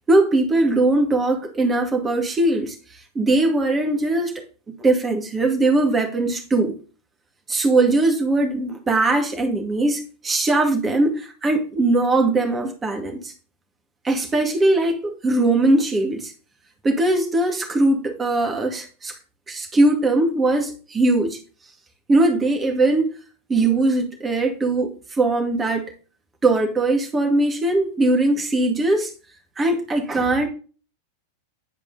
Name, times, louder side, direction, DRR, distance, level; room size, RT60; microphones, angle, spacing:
voice 1, 0.1-2.8 3.2-4.4 4.8-6.7 7.5-13.3 14.0-16.3 16.8-19.1 19.5-21.4 22.1-23.1 23.5-24.9 25.2-25.9 26.4-29.1 29.6-30.5, right 2 dB, 15° right, 2.1 m, -20 dB
10.5 x 4.8 x 4.0 m
figure-of-eight pair, 90°, 0 cm